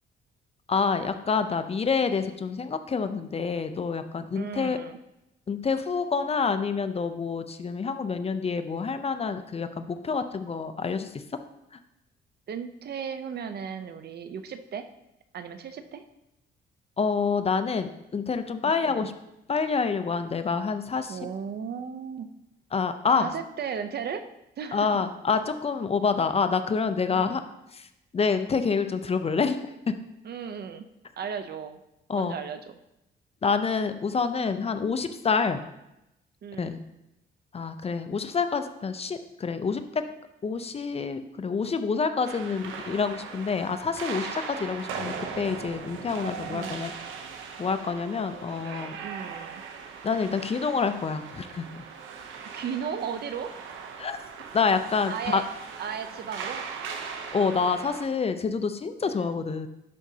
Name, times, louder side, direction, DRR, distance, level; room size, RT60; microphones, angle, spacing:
voice 1, 0.7-4.8 5.5-11.2 17.0-19.1 19.5-21.2 22.7-23.3 24.7-27.4 27.7-27.9 28.1-29.9 32.1-32.4 33.4-35.6 36.6-36.8 37.5-40.0 40.4-46.9 47.6-49.0 50.0-51.8 54.0-54.2 54.5-55.4 57.3-59.7, left 5 dB, 30° left, 9 dB, 0.5 m, -27 dB
voice 2, 4.3-5.0 12.5-14.9 15.3-16.0 18.7-19.1 21.1-22.3 23.1-24.3 24.6-25.0 27.1-27.4 30.2-30.9 31.2-31.8 32.1-32.8 36.4-36.8 46.5-46.9 49.0-49.6 52.5-53.5 55.1-55.5 55.8-56.6 59.1-59.3, right 7 dB, 55° right, 10 dB, 0.6 m, -35 dB
sound 1, 42.2-58.1, right 6 dB, 90° right, 0.8 m, -39 dB
10.5 x 5.1 x 2.8 m, 0.87 s
cardioid pair, 90°, 20 cm